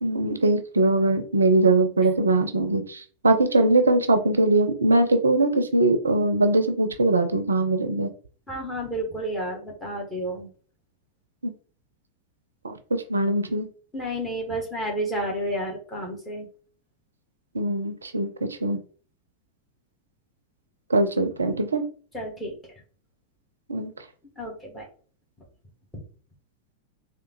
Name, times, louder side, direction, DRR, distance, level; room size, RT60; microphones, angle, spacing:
voice 1, 0.0-8.1 11.4-11.5 12.6-13.7 17.5-18.8 20.9-21.8 23.7-23.9, right 2 dB, 75° right, 0.4 m, -22 dB
voice 2, 8.5-10.5 13.9-16.5 22.1-22.6 24.4-24.9 25.9-26.0, right 1 dB, 10° left, 1.3 m, -31 dB
3.5 x 2.2 x 3.0 m
figure-of-eight pair, 90°, 0 cm